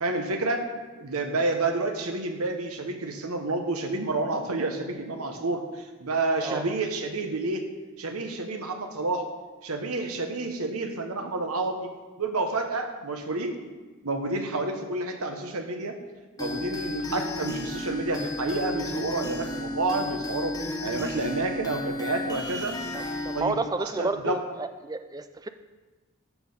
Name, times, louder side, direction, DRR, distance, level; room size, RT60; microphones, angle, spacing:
voice 1, 0.0-0.7 1.0-7.6 8.0-9.3 9.6-11.9 12.2-13.6 14.0-15.9 16.4-22.7 23.3-24.4, right 2 dB, 80° right, 5 dB, 1.2 m, -29 dB
sound 1, 16.4-23.4, left 1 dB, 15° left, 1.0 m, -33 dB
voice 2, 23.4-24.4 24.8-25.5, right 3 dB, 15° right, 9 dB, 0.4 m, -30 dB
13.0 x 4.4 x 5.5 m, 1.3 s
head